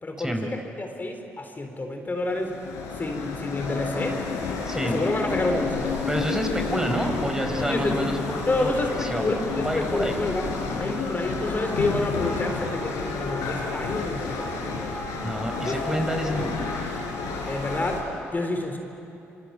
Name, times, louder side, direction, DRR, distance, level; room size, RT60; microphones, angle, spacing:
voice 1, 0.0-2.5 3.0-4.2 4.7-6.0 7.6-8.1 8.5-15.0 15.6-15.8 17.2-18.0 18.3-18.8, left 2 dB, 30° left, 4 dB, 4.1 m, -29 dB
sound 1, 2.2-18.0, left 4 dB, 75° left, 4.3 m, -31 dB
voice 2, 4.7-5.0 6.1-10.2 15.2-16.7, equal, 10° right, 4 dB, 4.3 m, -28 dB
27.5 x 24.5 x 9.0 m, 2.9 s
hypercardioid pair, 50°, 6 cm